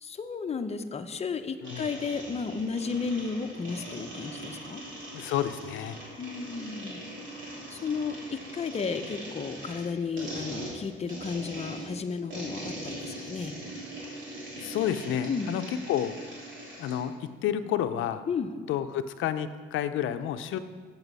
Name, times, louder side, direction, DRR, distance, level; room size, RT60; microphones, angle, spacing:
voice 1, 0.0-4.8 6.2-7.0 7.7-13.5 15.3-15.5 18.3-18.5, left 5 dB, 30° left, 7 dB, 0.6 m, -33 dB
sound 1, 1.6-17.0, right 1 dB, 70° right, 3.2 m, -41 dB
voice 2, 5.1-6.0 14.6-16.2 16.8-18.3 18.7-20.6, left 10 dB, 85° left, 11 dB, 0.5 m, -30 dB
8.0 x 7.0 x 5.4 m, 1.5 s
cardioid pair, 90°, 20 cm